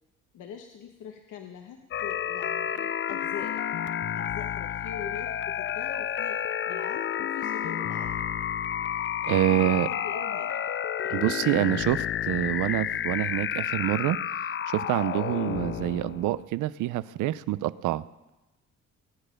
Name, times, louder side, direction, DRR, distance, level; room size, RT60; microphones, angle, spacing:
voice 1, 0.3-3.6 4.1-6.4 6.7-8.2 9.3-10.7, left 7 dB, 85° left, 3 dB, 1.2 m, -43 dB
sound 1, 1.9-16.4, left 9 dB, 40° left, 0.4 m, -30 dB
voice 2, 9.2-9.9 11.1-14.2 14.7-18.3, right 15 dB, 85° right, 17 dB, 0.6 m, -27 dB
19.0 x 9.0 x 6.5 m, 1.0 s
cardioid pair, 90°, 30 cm